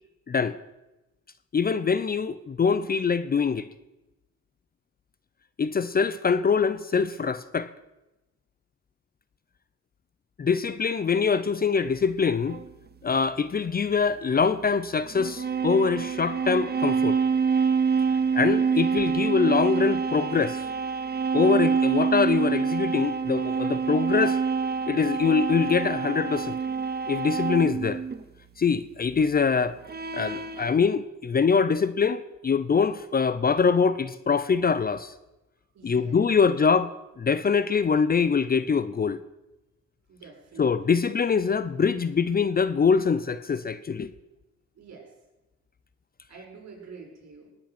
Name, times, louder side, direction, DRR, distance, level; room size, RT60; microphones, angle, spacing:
voice 1, 0.3-0.6 1.5-3.7 5.6-7.7 10.4-12.6 13.0-17.2 18.3-20.7 21.3-24.4 24.9-26.6 27.1-28.0 28.6-29.8 30.1-35.1 35.8-36.9 37.2-39.2 40.6-44.1, left 5 dB, 30° left, 0.6 m, -24 dB
sound 1, 12.5-12.7 15.1-28.2 29.8-30.7, right 5 dB, 30° right, 1.1 m, -26 dB
voice 2, 35.7-36.3 40.1-40.7 44.7-45.1 46.3-47.5, right 4 dB, 60° right, 6.0 m, -46 dB
19.0 x 9.0 x 6.0 m
cardioid pair, 90°, 30 cm